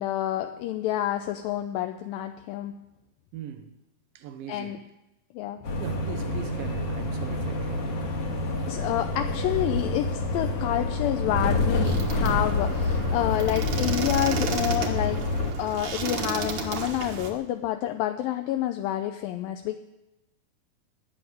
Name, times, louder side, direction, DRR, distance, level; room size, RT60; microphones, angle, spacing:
voice 1, 0.0-2.8 4.5-4.8 5.3-5.6 8.7-15.2 15.6-19.8, left 12 dB, 80° left, 2.4 m, -28 dB
voice 2, 3.3-3.8 4.2-4.8 5.7-8.1, right 8 dB, 85° right, 2.9 m, -40 dB
sound 1, 5.6-15.5, left 2 dB, 50° left, 2.5 m, -28 dB
sound 2, 11.8-17.3, right 4 dB, 60° right, 2.5 m, -32 dB
13.5 x 10.0 x 9.4 m
omnidirectional pair, 4.1 m